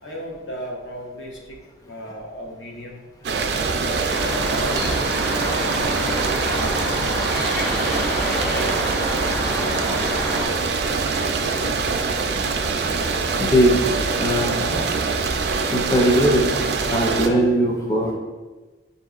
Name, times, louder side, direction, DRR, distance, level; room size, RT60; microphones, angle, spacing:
voice 1, 0.0-1.6 1.9-3.1 3.8-4.9 5.5-6.9 7.6-10.9 11.4-12.4, equal, 80° left, -1 dB, 0.8 m, -36 dB
sound 1, 3.2-17.3, right 4 dB, 60° right, 0.3 m, -24 dB
sound 2, 4.1-10.5, equal, 60° left, 1.0 m, -28 dB
voice 2, 13.4-13.9 14.2-14.8 15.7-16.5 16.9-18.1, equal, 20° left, -1 dB, 0.4 m, -19 dB
7.1 x 2.7 x 2.4 m, 1.2 s
head